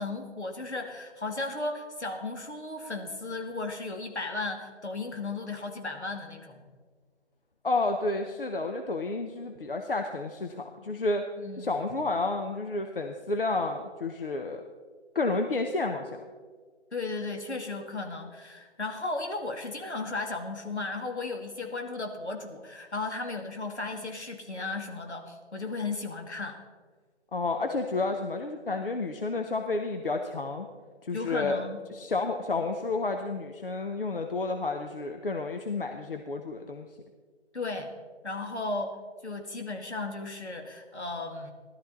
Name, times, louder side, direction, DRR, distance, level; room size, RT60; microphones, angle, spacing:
voice 1, 0.0-6.7 11.4-11.7 16.9-26.6 31.1-31.8 37.5-38.0 38.2-41.5, left 3 dB, 70° left, 3 dB, 2.3 m, -35 dB
voice 2, 7.6-11.3 11.6-14.6 15.1-16.2 27.3-30.7 31.0-31.6 31.9-36.9, left 3 dB, 50° left, 5 dB, 0.9 m, -30 dB
16.5 x 12.5 x 4.0 m, 1.5 s
figure-of-eight pair, 155°, 35 cm